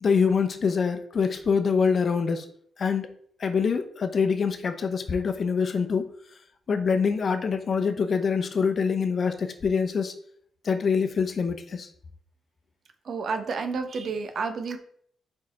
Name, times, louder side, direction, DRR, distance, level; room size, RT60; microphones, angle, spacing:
voice 1, 0.0-2.4 2.8-3.1 3.4-6.1 6.7-10.1 10.6-11.9, left 5 dB, 50° left, 8 dB, 0.7 m, -25 dB
voice 2, 13.1-14.8, right 4 dB, 60° right, 7 dB, 0.8 m, -30 dB
4.8 x 4.7 x 4.3 m, 0.62 s
cardioid pair, 90°, 0 cm